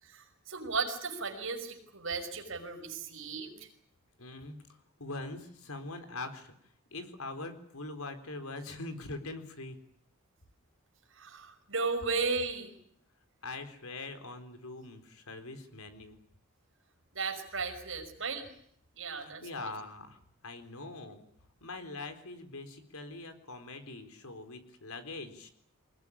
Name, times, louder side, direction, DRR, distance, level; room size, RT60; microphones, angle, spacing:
voice 1, 0.0-3.7 11.1-12.7 17.1-18.5 19.0-19.7, right 4 dB, 60° right, 4 dB, 5.7 m, -35 dB
voice 2, 4.2-4.6 5.0-6.5 6.9-9.8 13.4-16.2 19.2-21.2 21.6-25.5, left 2 dB, 80° left, 7 dB, 4.0 m, -43 dB
24.5 x 20.5 x 10.0 m, 0.67 s
head